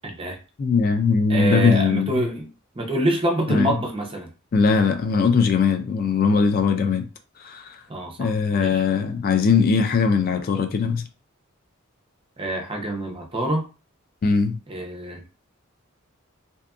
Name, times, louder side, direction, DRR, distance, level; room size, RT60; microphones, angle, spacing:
voice 1, 0.0-0.4 1.3-2.5 2.7-4.3 7.9-8.8 12.4-13.6 14.7-15.2, right 1 dB, 25° right, 0.5 m, -26 dB
voice 2, 0.6-2.2 3.5-3.8 4.5-7.1 7.4-7.8 8.2-11.0 14.2-14.6, left 5 dB, 45° left, 0.3 m, -20 dB
2.6 x 2.5 x 2.3 m
head